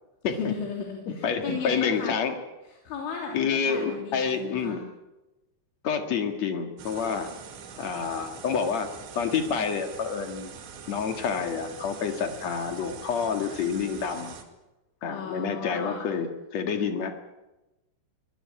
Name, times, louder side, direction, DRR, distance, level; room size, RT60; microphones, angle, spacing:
voice 1, 0.3-2.2 2.9-4.8 15.1-16.1, left 5 dB, 70° left, 0 dB, 5.5 m, -35 dB
voice 2, 1.1-2.3 3.3-4.8 5.8-7.3 7.8-8.9 9.1-10.5 10.9-14.4 15.0-16.3 16.5-17.2, left 6 dB, 50° left, 5 dB, 2.3 m, -28 dB
sound 1, 6.8-14.4, right 7 dB, 65° right, 4.2 m, -44 dB
24.0 x 19.0 x 8.7 m, 1.0 s
omnidirectional pair, 5.6 m